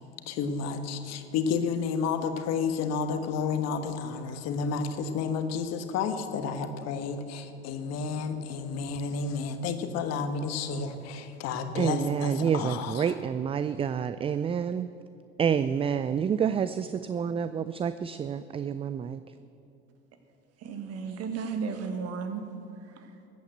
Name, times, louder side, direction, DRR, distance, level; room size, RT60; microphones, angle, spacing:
voice 1, 0.3-12.9, left 5 dB, 55° left, 8 dB, 1.3 m, -31 dB
voice 2, 11.8-14.9 15.4-19.2, right 7 dB, 20° right, 13 dB, 0.3 m, -28 dB
voice 3, 20.6-22.4 22.8-23.2, right 5 dB, 50° right, 7 dB, 1.6 m, -34 dB
14.5 x 8.6 x 7.9 m, 2.7 s
hypercardioid pair, 70°, 31 cm